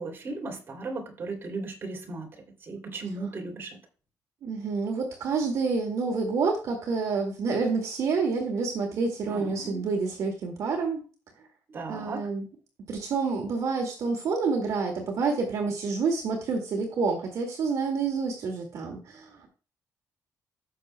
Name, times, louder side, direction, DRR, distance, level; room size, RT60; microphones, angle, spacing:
voice 1, 0.0-2.3 2.6-3.8 9.2-9.8 11.7-12.3, right 3 dB, 35° right, 1 dB, 2.9 m, -36 dB
voice 2, 4.4-11.0 11.9-12.5 12.9-19.5, right 4 dB, 60° right, 2 dB, 2.1 m, -28 dB
16.0 x 6.4 x 2.2 m, 0.36 s
cardioid pair, 165°, 6 cm